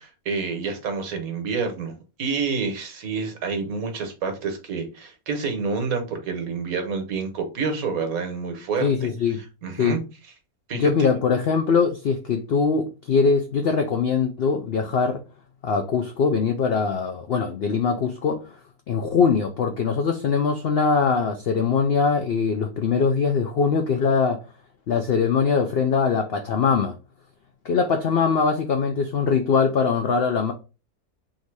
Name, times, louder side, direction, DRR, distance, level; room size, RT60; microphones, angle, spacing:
voice 1, 0.0-9.1 9.6-10.0 10.7-10.9, right 5 dB, 70° right, 1.4 m, -28 dB
voice 2, 8.8-9.4 9.8-10.0 10.7-15.2 15.6-18.6 18.9-24.4 24.9-27.0 27.6-30.5, left 5 dB, 70° left, 0.5 m, -22 dB
3.7 x 2.7 x 4.6 m
omnidirectional pair, 1.6 m